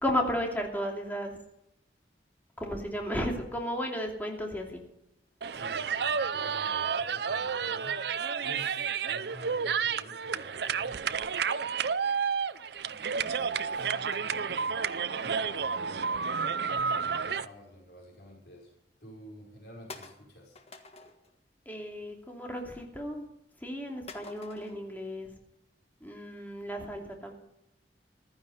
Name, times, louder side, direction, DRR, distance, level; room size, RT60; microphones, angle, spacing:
voice 1, 0.0-1.4 2.6-4.8 21.6-23.3 23.6-25.3 26.0-27.3, equal, 10° left, 1 dB, 2.7 m, -34 dB
sound 1, 5.4-17.4, right 6 dB, 60° right, 0.5 m, -31 dB
voice 2, 5.5-8.0 8.4-11.4 12.8-13.9 14.2-14.9 15.2-16.2 16.8-18.7 19.0-20.6, equal, 65° left, -1 dB, 5.2 m, -50 dB
sound 2, 13.9-15.5 16.1-17.4 17.7-18.0 18.5-18.6 19.1-19.2 19.9-21.4 21.7-22.1 22.4-23.1 24.1-24.8, left 3 dB, 35° left, 1.6 m, -50 dB
15.0 x 13.0 x 5.5 m, 0.83 s
head